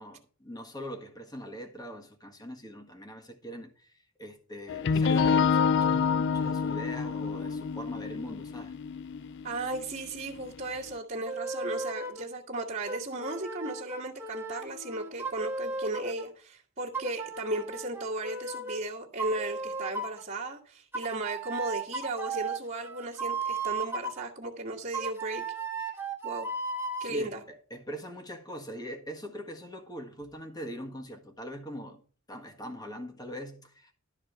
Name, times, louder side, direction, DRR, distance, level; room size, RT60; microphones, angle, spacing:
voice 1, 0.0-8.7 27.0-32.0 32.3-33.9, equal, 20° left, 1.6 m, -42 dB
sound 1, 4.7-10.6, left 6 dB, 60° left, 0.4 m, -27 dB
voice 2, 9.4-25.4 26.2-26.5 27.0-27.4, right 2 dB, 40° right, 1.7 m, -35 dB
sound 2, 11.3-12.3 12.8-16.3 16.9-18.8 19.2-20.3 20.9-24.2 24.9-27.1, right 3 dB, 10° right, 1.4 m, -35 dB
12.5 x 4.3 x 6.6 m
head